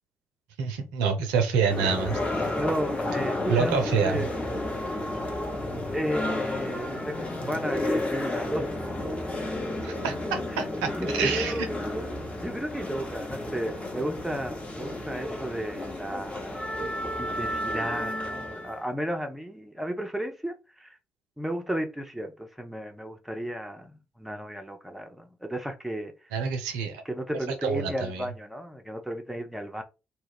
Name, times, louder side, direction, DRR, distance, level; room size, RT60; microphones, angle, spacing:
voice 1, 0.6-2.5 3.5-4.3 9.8-10.9 11.2-11.5 26.3-27.0 27.6-28.2, right 6 dB, 70° right, 0.5 m, -27 dB
sound 1, 1.7-18.8, left 1 dB, 20° left, 0.9 m, -32 dB
voice 2, 2.5-4.3 5.9-8.8 10.5-10.6 11.0-11.7 12.4-16.6 17.2-21.0 21.4-26.1 27.0-29.8, equal, ahead, 0.6 m, -34 dB
2.2 x 2.1 x 3.3 m
figure-of-eight pair, 40°, 6 cm